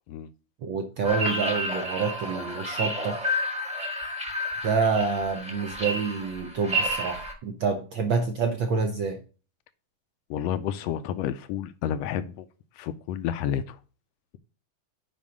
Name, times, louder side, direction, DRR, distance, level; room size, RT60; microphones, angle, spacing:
voice 1, 0.6-3.2 4.6-9.2, right 5 dB, 75° right, 5 dB, 1.1 m, -27 dB
sound 1, 1.0-7.3, equal, 5° right, 0.8 m, -30 dB
voice 2, 10.3-12.5 12.8-13.8, left 9 dB, 80° left, 12 dB, 1.5 m, -30 dB
7.2 x 5.4 x 6.2 m, 0.37 s
omnidirectional pair, 3.3 m